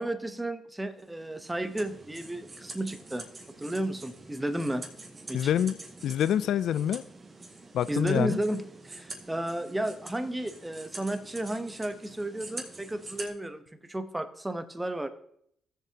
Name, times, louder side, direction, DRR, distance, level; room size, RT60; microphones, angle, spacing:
voice 1, 0.0-3.2 3.6-4.8 5.3-5.5 7.9-13.6 13.9-15.1, right 1 dB, 10° right, 9 dB, 0.9 m, -33 dB
sound 1, 1.0-13.3, right 2 dB, 30° right, 1.9 m, -46 dB
voice 2, 5.3-7.0 7.7-8.4, left 10 dB, 70° left, 17 dB, 0.3 m, -27 dB
15.5 x 7.3 x 2.9 m, 0.71 s
cardioid pair, 90°, 0 cm